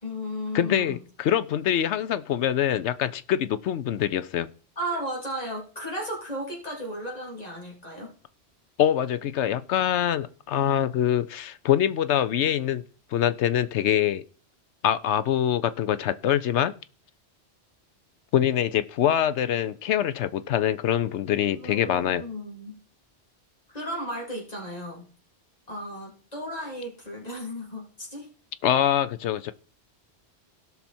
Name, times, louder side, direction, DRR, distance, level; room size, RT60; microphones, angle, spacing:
voice 1, 0.0-1.0 4.8-8.1 21.6-22.8 23.7-25.1 25.7-28.3, equal, 35° left, -1 dB, 3.3 m, -34 dB
voice 2, 0.5-4.5 8.8-12.8 13.1-14.2 14.8-16.7 18.3-22.2 28.6-29.5, left 10 dB, 85° left, 14 dB, 1.0 m, -24 dB
17.0 x 5.9 x 4.3 m, 0.41 s
omnidirectional pair, 1.1 m